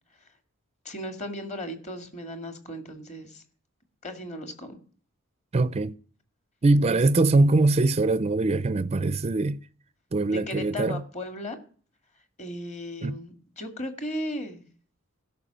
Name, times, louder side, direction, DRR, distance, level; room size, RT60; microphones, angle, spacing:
voice 1, 0.9-3.4 4.0-4.8 6.9-7.0 7.3-7.4 10.3-11.6 12.4-14.7, equal, 35° left, 2.0 m, -36 dB
voice 2, 5.5-5.9 6.6-9.6 10.1-11.0 13.0-13.2, right 2 dB, 30° right, 0.4 m, -22 dB
12.5 x 5.6 x 9.0 m
head